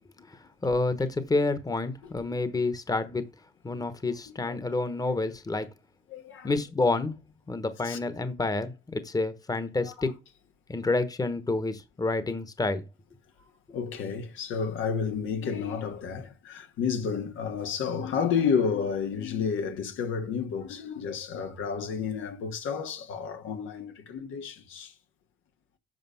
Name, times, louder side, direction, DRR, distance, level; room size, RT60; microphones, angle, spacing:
voice 1, 0.6-3.3 3.6-5.7 6.4-7.2 7.5-10.2 10.7-12.8, left 3 dB, 20° left, 1.1 m, -28 dB
voice 2, 6.1-6.5 7.8-8.0 9.8-9.9 13.7-24.9, left 6 dB, 85° left, 1.3 m, -31 dB
7.7 x 5.2 x 5.6 m
cardioid pair, 90°, 20 cm